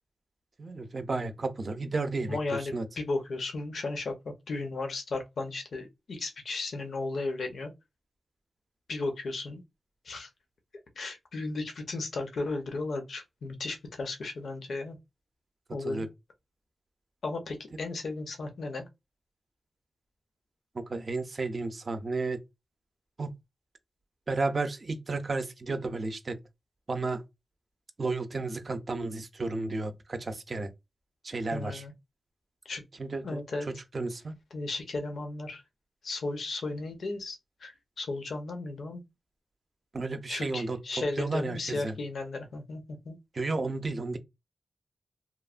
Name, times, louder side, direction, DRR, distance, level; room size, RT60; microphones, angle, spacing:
voice 1, 0.6-2.4 2.7-2.8 15.8-16.1 20.7-22.4 23.2-23.3 24.3-26.4 26.9-27.2 28.0-30.7 31.2-31.8 33.0-33.4 33.7-34.3 39.9-40.8 41.2-42.0 43.3-44.2, right 3 dB, 55° right, 0.4 m, -32 dB
voice 2, 2.3-7.7 8.9-9.6 10.0-10.3 11.0-15.0 15.7-16.1 17.2-18.9 31.5-31.9 32.6-32.8 33.2-33.7 34.5-35.6 36.0-39.0 40.3-43.2, left 3 dB, 90° left, 0.6 m, -35 dB
3.0 x 2.1 x 2.3 m
cardioid pair, 60°, 0 cm